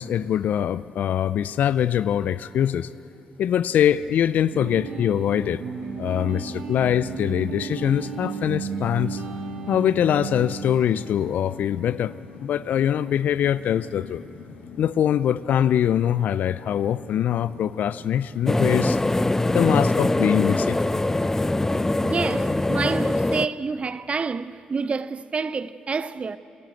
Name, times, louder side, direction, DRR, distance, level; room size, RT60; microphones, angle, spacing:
voice 1, 0.0-2.9 3.4-5.6 6.0-9.2 9.7-12.1 12.4-14.2 14.7-19.0 19.5-20.8, left 10 dB, 65° left, 0.4 m, -23 dB
sound 1, 4.5-11.0, right 6 dB, 70° right, 1.6 m, -34 dB
sound 2, 4.6-22.8, left 4 dB, 85° left, 2.2 m, -44 dB
sound 3, 18.5-23.5, left 2 dB, 15° left, 0.5 m, -23 dB
voice 2, 22.0-26.4, right 4 dB, 40° right, 0.7 m, -28 dB
28.0 x 12.0 x 8.0 m
hypercardioid pair, 50°, 3 cm